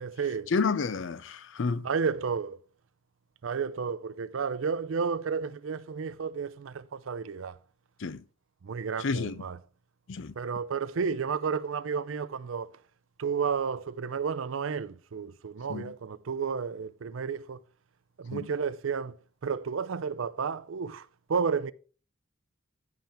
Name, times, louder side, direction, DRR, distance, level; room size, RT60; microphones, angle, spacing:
voice 1, 0.0-0.5 1.8-2.6 3.4-7.6 8.6-9.6 10.4-12.7 13.2-17.6 18.2-19.2 19.4-21.7, right 6 dB, 80° right, 0.5 m, -32 dB
voice 2, 0.5-1.9 8.0-8.2 9.0-9.4 10.1-10.3 15.7-15.9 18.3-18.5, left 4 dB, 65° left, 0.5 m, -30 dB
10.0 x 5.7 x 4.3 m
head